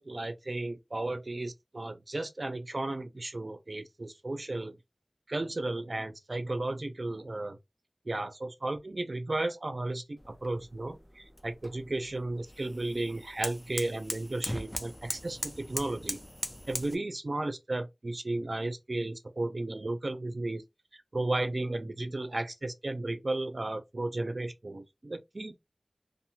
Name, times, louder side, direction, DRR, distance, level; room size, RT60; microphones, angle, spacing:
voice 1, 0.0-4.8 5.3-7.6 8.0-16.2 16.7-20.6 20.9-25.6, right 2 dB, 65° right, 0.5 m, -34 dB
sound 1, 10.2-17.0, equal, 15° left, 0.6 m, -40 dB
2.6 x 2.1 x 2.8 m
wide cardioid pair, 40°, 0 cm